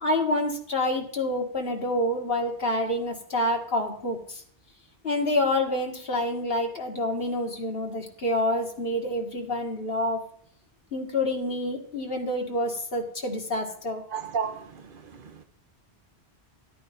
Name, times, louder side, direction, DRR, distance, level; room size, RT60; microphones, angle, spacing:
voice 1, 0.0-4.4 5.0-10.2 10.9-14.0, left 1 dB, 65° left, 1.9 m, -27 dB
voice 2, 14.1-15.4, right 6 dB, 55° right, 1.0 m, -33 dB
13.5 x 11.5 x 2.6 m
omnidirectional pair, 1.1 m